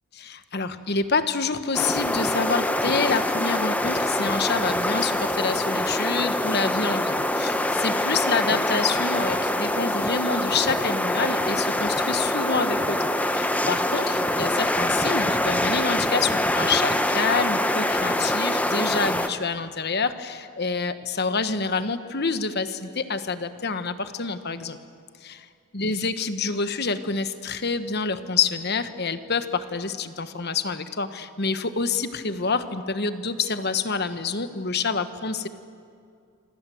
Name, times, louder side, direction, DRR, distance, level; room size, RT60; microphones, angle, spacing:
voice 1, 0.1-24.8 25.2-25.5 25.7-35.5, left 4 dB, 45° left, 11 dB, 1.2 m, -27 dB
sound 1, 1.7-19.3, left 1 dB, 5° left, 0.9 m, -24 dB
27.0 x 24.5 x 7.8 m, 2.3 s
head